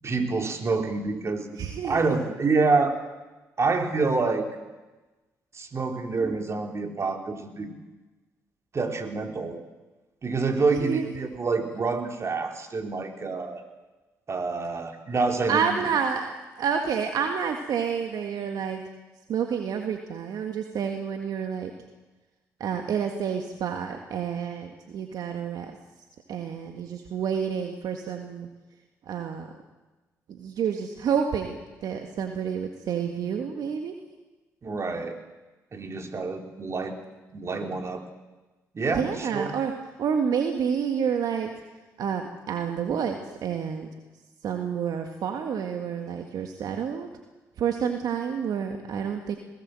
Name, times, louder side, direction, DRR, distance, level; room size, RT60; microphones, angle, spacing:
voice 1, 0.0-1.5 1.8-3.0 3.6-4.4 5.5-7.7 8.7-9.6 10.2-13.6 14.3-15.7 34.6-35.2 35.7-37.0 37.3-38.0 38.7-39.6, right 4 dB, 45° right, 5 dB, 3.4 m, -27 dB
voice 2, 1.5-2.0 10.7-11.0 15.5-18.8 19.3-21.7 22.6-25.7 26.3-28.5 29.1-29.5 30.3-33.9 38.9-39.7 40.0-41.5 42.0-43.9 44.4-47.1 47.6-49.4, right 7 dB, 70° right, 5 dB, 1.8 m, -29 dB
21.5 x 18.0 x 7.8 m, 1.2 s
supercardioid pair, 55°, 7 cm